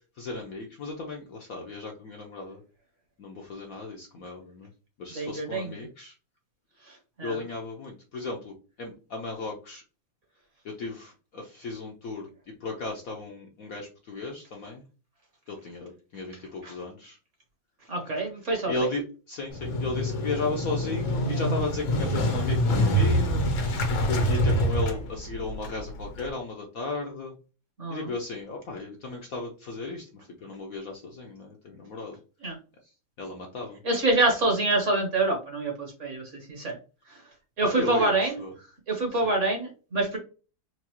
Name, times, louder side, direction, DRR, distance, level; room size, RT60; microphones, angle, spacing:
voice 1, 0.2-2.6 3.2-4.7 5.0-6.1 7.2-9.8 10.6-12.3 12.6-14.8 15.5-17.2 18.7-23.5 23.9-27.3 27.9-30.1 30.4-32.2 33.2-33.8 37.6-38.5 39.1-39.3, left 3 dB, 65° left, 0 dB, 0.9 m, -35 dB
voice 2, 5.1-5.7 7.2-7.3 16.6-16.7 17.9-18.7 27.8-28.0 32.4-32.5 33.8-36.2 36.5-36.8 37.6-38.3 38.9-40.2, right 2 dB, 45° right, 2 dB, 1.2 m, -26 dB
Motorcycle, 19.5-26.3, equal, 80° left, 1.8 m, -26 dB
4.7 x 2.4 x 2.9 m, 0.34 s
omnidirectional pair, 2.1 m